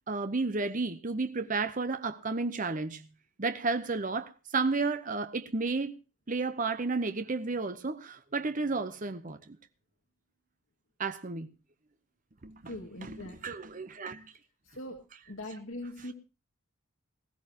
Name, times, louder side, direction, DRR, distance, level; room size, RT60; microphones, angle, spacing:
voice 1, 0.1-3.0 3.4-5.9 6.3-9.6 11.0-11.5 12.4-12.7 13.0-14.3, right 3 dB, 35° right, 0.8 m, -32 dB
voice 2, 12.6-13.7 14.6-15.0 15.3-16.1, left 1 dB, 65° left, 2.3 m, -42 dB
20.0 x 15.0 x 2.9 m
head